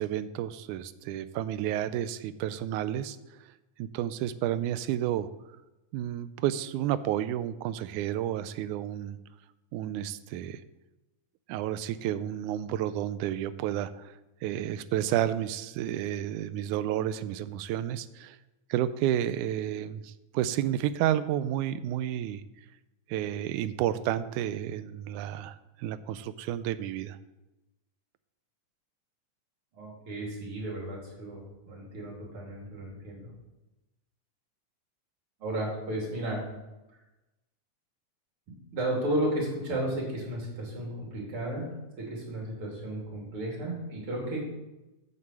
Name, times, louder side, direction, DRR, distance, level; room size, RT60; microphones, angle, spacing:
voice 1, 0.0-3.4 3.8-5.3 5.9-9.2 9.7-10.6 11.5-14.1 14.4-18.4 18.7-22.4 23.1-27.2, right 11 dB, 80° right, 14 dB, 1.9 m, -31 dB
voice 2, 29.7-33.3 35.4-36.4 38.7-41.7 42.0-44.4, right 1 dB, 45° right, -2 dB, 3.6 m, -33 dB
7.9 x 7.5 x 7.5 m, 1.0 s
omnidirectional pair, 3.6 m